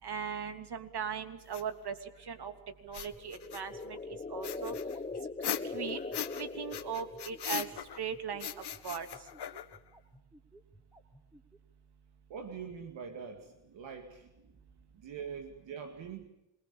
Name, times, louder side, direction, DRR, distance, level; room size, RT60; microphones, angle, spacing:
voice 1, 0.0-2.5 2.8-4.0 4.3-4.7 5.6-6.0 6.3-7.7 8.0-8.5 8.8-9.1, right 7 dB, 60° right, 7 dB, 3.0 m, -38 dB
sound 1, 1.5-1.6 2.8-3.8 4.4-6.4 6.7-8.1 8.4-9.9, left 9 dB, 65° left, 1.7 m, -39 dB
sound 2, 3.1-7.6, left 3 dB, 20° left, 1.0 m, -41 dB
sound 3, 3.1-11.6, right 1 dB, 5° right, 3.5 m, -57 dB
voice 2, 12.3-14.3 14.9-16.3, right 6 dB, 80° right, 5 dB, 2.4 m, -43 dB
27.0 x 21.0 x 7.1 m, 0.88 s
supercardioid pair, 55°, 44 cm